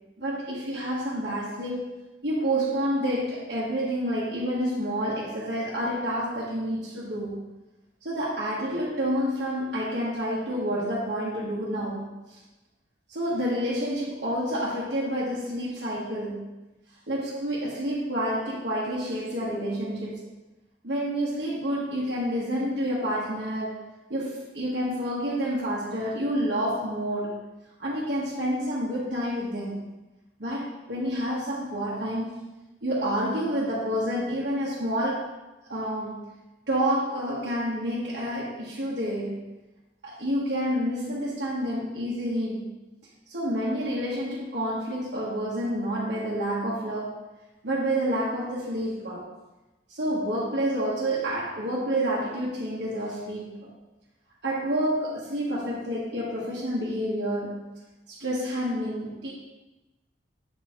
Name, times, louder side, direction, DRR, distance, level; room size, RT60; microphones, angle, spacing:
voice 1, 0.2-1.9 2.2-7.3 8.0-12.1 13.1-16.5 17.1-20.2 20.8-23.8 24.1-27.4 27.8-29.9 30.4-32.3 32.8-35.3 35.7-36.3 36.7-39.5 40.0-42.7 43.3-47.2 47.6-49.3 49.9-53.7 54.4-57.7 58.1-59.3, equal, 75° right, -7 dB, 1.4 m, -29 dB
7.6 x 4.4 x 3.8 m, 1.1 s
head